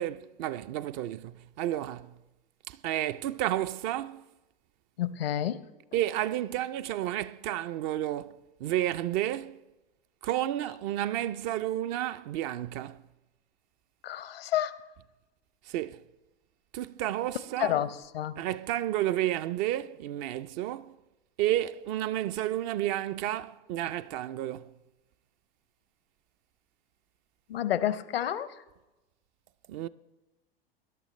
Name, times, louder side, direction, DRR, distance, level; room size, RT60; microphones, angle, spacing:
voice 1, 0.0-2.2 2.7-4.2 5.9-9.6 10.2-13.0 15.7-16.1 16.7-17.8 18.4-21.0 21.4-24.8 29.7-29.9, right 13 dB, 50° right, 0.5 m, -31 dB
voice 2, 5.0-5.6 14.0-14.8 17.6-18.3 27.5-28.6, left 11 dB, 80° left, 0.7 m, -30 dB
18.5 x 11.5 x 3.1 m
hypercardioid pair, 90°, 30 cm